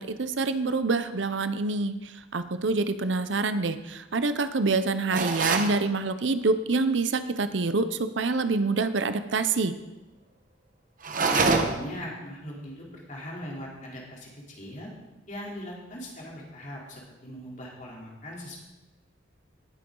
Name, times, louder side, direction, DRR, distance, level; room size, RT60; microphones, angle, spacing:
voice 1, 0.0-2.0 2.3-9.8, right 3 dB, 70° right, 11 dB, 0.7 m, -26 dB
sound 1, 5.1-5.8 11.0-11.9, right 3 dB, 45° right, 1.1 m, -25 dB
voice 2, 11.3-14.3 14.6-14.9 15.3-18.5, equal, 40° left, -3 dB, 3.3 m, -39 dB
18.0 x 8.8 x 3.9 m, 1.1 s
head